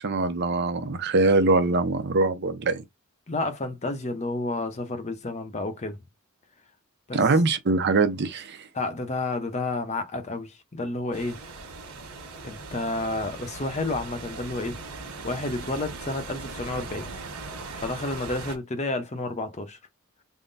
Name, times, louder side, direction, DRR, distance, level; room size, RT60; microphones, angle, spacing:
voice 1, 0.0-2.8 7.1-8.7, right 3 dB, 50° right, 0.6 m, -23 dB
voice 2, 3.3-6.0 7.1-7.2 8.7-11.4 12.4-14.8 15.2-17.1 17.8-19.8, left 2 dB, 30° left, 0.7 m, -30 dB
sound 1, 11.1-18.6, right 3 dB, 90° right, 1.2 m, -39 dB
3.7 x 2.0 x 3.9 m
head